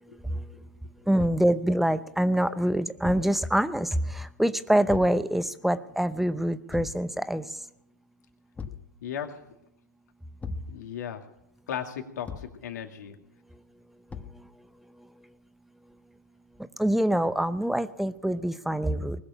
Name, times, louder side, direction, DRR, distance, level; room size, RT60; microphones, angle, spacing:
voice 1, 1.1-7.4 16.8-19.2, right 1 dB, ahead, 13 dB, 0.8 m, -25 dB
Thump thud, 1.2-1.5 3.0-3.4 4.9-5.2 6.7-7.1 8.6-8.9 10.4-10.8 12.3-12.6 14.1-14.4, left 6 dB, 15° left, 1.1 m, -38 dB
voice 2, 9.0-9.4 10.7-11.2 11.7-13.2, left 8 dB, 75° left, 4 dB, 2.4 m, -36 dB
20.5 x 6.9 x 9.9 m, 0.80 s
hypercardioid pair, 110°, 10 cm